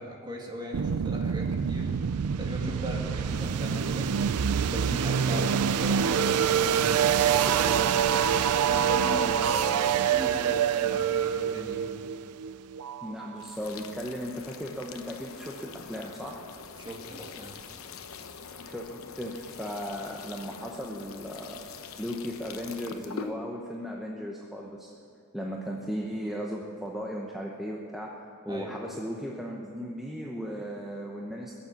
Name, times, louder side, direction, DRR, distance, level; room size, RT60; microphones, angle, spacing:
voice 1, 0.0-1.9 2.4-4.1 4.7-7.9 8.6-11.9 16.8-17.6 28.5-28.7, equal, 20° right, -1 dB, 2.2 m, -38 dB
sound 1, 0.7-13.6, right 8 dB, 90° right, 0.4 m, -26 dB
sound 2, 5.3-10.7, right 4 dB, 40° right, 0.6 m, -38 dB
voice 2, 13.0-16.4 18.6-21.6 22.0-24.9 25.3-31.7, equal, ahead, -2 dB, 0.9 m, -36 dB
sound 3, 13.4-23.3, left 5 dB, 70° left, 0.8 m, -44 dB
21.0 x 7.2 x 8.1 m, 2.3 s
head